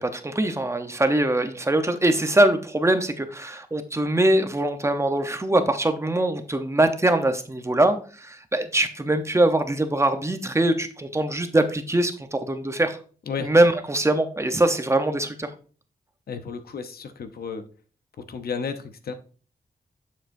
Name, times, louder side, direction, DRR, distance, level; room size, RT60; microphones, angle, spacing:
voice 1, 0.0-13.0 13.4-15.5, right 1 dB, 20° right, 7 dB, 0.8 m, -22 dB
voice 2, 16.3-17.7 18.3-19.1, left 6 dB, 80° left, 9 dB, 0.8 m, -32 dB
8.8 x 7.3 x 2.7 m, 0.40 s
wide cardioid pair, 115°, 16 cm